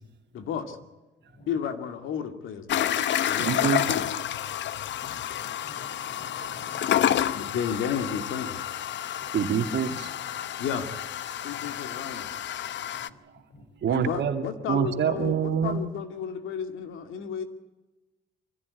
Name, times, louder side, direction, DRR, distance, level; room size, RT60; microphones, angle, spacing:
voice 1, 0.3-0.8 1.5-2.9 3.3-4.1 5.0-5.2 7.3-8.6 10.6-10.9 11.4-12.3 13.9-17.4, left 7 dB, 85° left, 8 dB, 2.4 m, -32 dB
sound 1, 2.7-13.1, left 11 dB, 65° left, 0.8 m, -29 dB
voice 2, 2.9-3.9 9.3-10.1 13.8-15.8, right 8 dB, 60° right, 6 dB, 2.4 m, -27 dB
voice 3, 5.0-7.5 9.2-9.3 11.5-11.7 12.9-13.2 13.5-13.6, left 1 dB, 35° left, 3 dB, 4.8 m, -51 dB
24.5 x 15.5 x 9.7 m, 1.1 s
cardioid pair, 90°, 20 cm